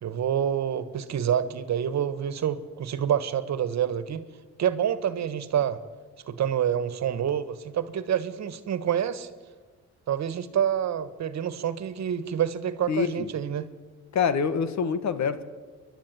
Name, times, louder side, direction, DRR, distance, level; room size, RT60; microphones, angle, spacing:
voice 1, 0.0-4.2 4.6-5.8 6.3-9.3 10.1-13.6, right 9 dB, 65° right, 13 dB, 1.6 m, -27 dB
voice 2, 12.9-13.3 14.1-15.4, left 6 dB, 65° left, 12 dB, 1.7 m, -26 dB
28.0 x 11.5 x 9.3 m, 1.4 s
cardioid pair, 90°, 30 cm